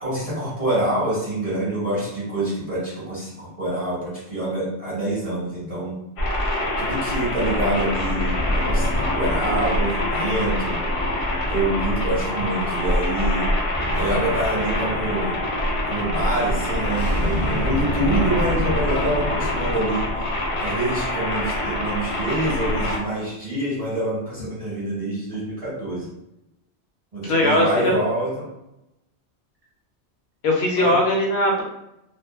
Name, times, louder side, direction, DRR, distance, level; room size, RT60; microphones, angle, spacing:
voice 1, 0.0-5.9 6.8-10.8 11.5-13.5 13.9-15.4 15.9-20.1 20.6-26.1 27.1-28.5 30.8-31.0, right 1 dB, 35° right, -9 dB, 1.1 m, -26 dB
sound 1, 6.2-23.0, left 1 dB, 50° left, 0.4 m, -25 dB
sound 2, 13.7-19.7, left 1 dB, 15° right, 0.7 m, -31 dB
voice 2, 27.2-28.0 30.4-31.6, left 1 dB, 70° left, -1 dB, 0.9 m, -19 dB
2.5 x 2.4 x 2.3 m, 0.87 s
omnidirectional pair, 1.2 m